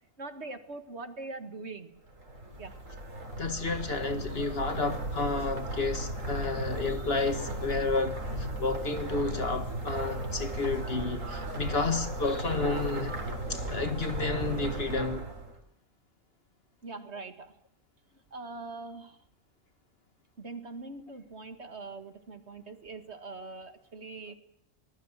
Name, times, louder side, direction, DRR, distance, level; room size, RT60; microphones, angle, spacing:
voice 1, 0.2-2.0 2.6-2.8 16.8-17.6 18.1-19.2 20.4-24.3, right 3 dB, 55° right, 2.2 m, -42 dB
sound 1, 2.1-15.6, right 1 dB, 90° right, 4.1 m, -36 dB
voice 2, 3.4-13.2 13.5-15.3, left 3 dB, 50° left, 2.0 m, -31 dB
25.5 x 20.0 x 7.5 m
omnidirectional pair, 1.3 m